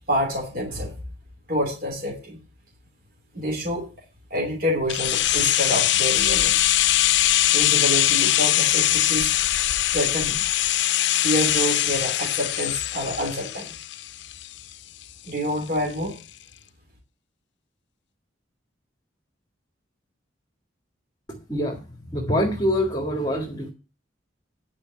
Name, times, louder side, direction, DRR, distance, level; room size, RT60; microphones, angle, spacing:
voice 1, 0.1-1.0 1.5-2.4 3.3-3.9 4.3-6.6 7.5-9.4 9.9-10.4 11.2-13.7 15.2-16.2, equal, 50° right, 0 dB, 3.1 m, -27 dB
sound 1, 4.9-14.7 15.0-15.1, left 14 dB, 65° left, 0.5 m, -22 dB
voice 2, 21.5-21.8 22.1-23.7, equal, 20° left, 0 dB, 1.9 m, -24 dB
10.0 x 5.6 x 7.5 m, 0.33 s
head